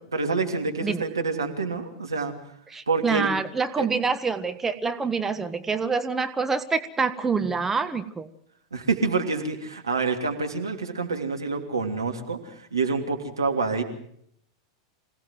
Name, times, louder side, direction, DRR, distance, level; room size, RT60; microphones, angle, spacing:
voice 1, 0.1-2.3 2.9-3.3 3.8-3.9 8.7-13.8, right 4 dB, 85° right, 4 dB, 3.1 m, -27 dB
voice 2, 2.7-8.3, right 5 dB, 15° right, 9 dB, 1.3 m, -26 dB
26.0 x 17.5 x 7.8 m, 0.69 s
figure-of-eight pair, 95°, 2 cm